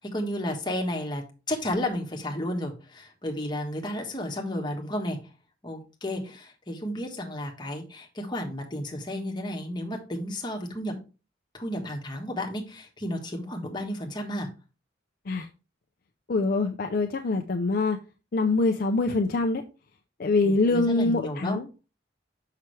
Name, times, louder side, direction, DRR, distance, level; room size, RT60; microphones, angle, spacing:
voice 1, 0.0-5.2 5.6-10.9 11.5-14.5 20.4-21.6, left 1 dB, 25° left, 1 dB, 1.3 m, -32 dB
voice 2, 16.3-18.0 18.3-19.6 20.2-21.7, left 3 dB, 50° left, 5 dB, 0.5 m, -24 dB
6.0 x 5.7 x 3.2 m, 0.31 s
head